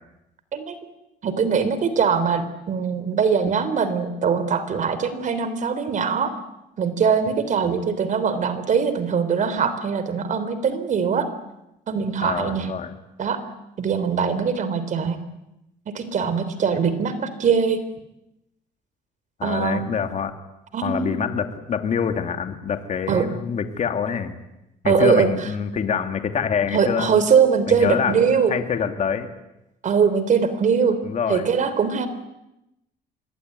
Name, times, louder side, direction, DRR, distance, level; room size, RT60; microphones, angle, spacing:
voice 1, 1.2-6.3 6.8-11.3 11.9-12.7 13.2-13.4 13.8-15.2 15.9-17.8 19.4-19.9 20.7-21.1 23.1-23.2 24.8-25.3 26.7-28.5 29.8-31.0 31.3-32.1, right 6 dB, 50° right, 12 dB, 3.5 m, -21 dB
voice 2, 12.2-12.9 19.4-20.4 20.8-24.3 24.8-27.2 27.7-29.3 31.0-31.5, left 7 dB, 45° left, 7 dB, 2.7 m, -25 dB
25.5 x 20.5 x 9.8 m, 0.90 s
cardioid pair, 110°, 17 cm